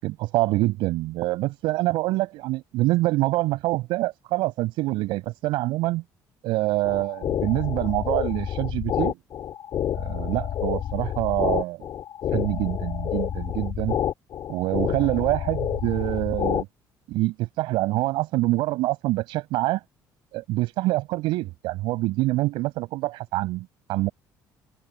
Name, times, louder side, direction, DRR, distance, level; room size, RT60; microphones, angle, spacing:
voice 1, 0.0-6.0 6.4-9.2 9.9-11.9 12.3-14.0 14.5-16.7 17.1-19.8 20.3-24.1, right 19 dB, 80° right, 7.0 m, -25 dB
sound 1, 6.8-16.6, left 10 dB, 60° left, 5.4 m, -28 dB
supercardioid pair, 80°, 8 cm